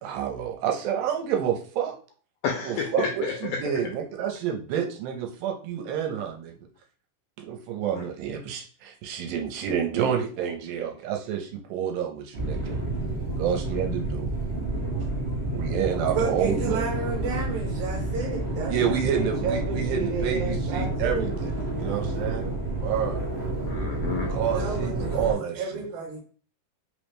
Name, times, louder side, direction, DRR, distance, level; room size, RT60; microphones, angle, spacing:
voice 1, 0.0-2.0 2.6-6.6 7.4-12.8 13.4-14.3 15.5-16.8 18.7-22.5 22.8-23.2 24.3-25.8, right 8 dB, 85° right, 2.3 m, -29 dB
voice 2, 2.4-3.4 7.9-8.0 14.9-15.3 23.7-24.3, left 6 dB, 85° left, 1.8 m, -31 dB
sound 1, 12.3-25.3, right 2 dB, 40° right, 0.7 m, -29 dB
voice 3, 16.1-21.4 24.5-26.2, right 3 dB, 70° right, 2.0 m, -32 dB
5.4 x 2.1 x 3.1 m
omnidirectional pair, 4.1 m